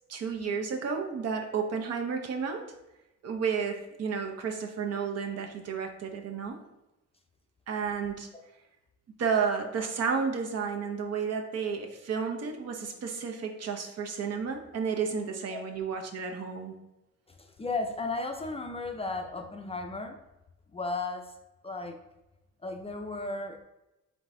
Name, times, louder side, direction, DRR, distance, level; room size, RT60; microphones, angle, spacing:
voice 1, 0.1-2.7 3.2-6.6 7.7-8.3 9.2-16.8, right 6 dB, 55° right, 3 dB, 0.8 m, -32 dB
voice 2, 17.3-20.1 20.7-21.3 21.6-22.0 22.6-23.6, left 3 dB, 20° left, 3 dB, 0.4 m, -34 dB
3.9 x 3.4 x 3.7 m, 0.96 s
cardioid pair, 90°, 30 cm